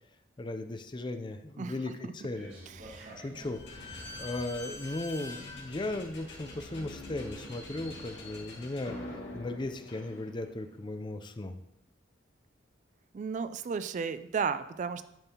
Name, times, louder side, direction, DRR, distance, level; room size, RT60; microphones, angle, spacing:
voice 1, 0.4-2.5 3.2-9.0 9.3-11.6, left 2 dB, 25° left, 8 dB, 0.5 m, -37 dB
voice 2, 1.6-2.1 2.7-3.2 13.1-15.0, right 5 dB, 40° right, 13 dB, 0.3 m, -34 dB
sound 1, 2.3-4.6 5.3-5.4, right 1 dB, 65° right, 2.2 m, -50 dB
Slam / Squeak, 3.4-10.7, left 2 dB, 65° left, 2.1 m, -44 dB
10.5 x 5.3 x 2.9 m, 0.79 s
head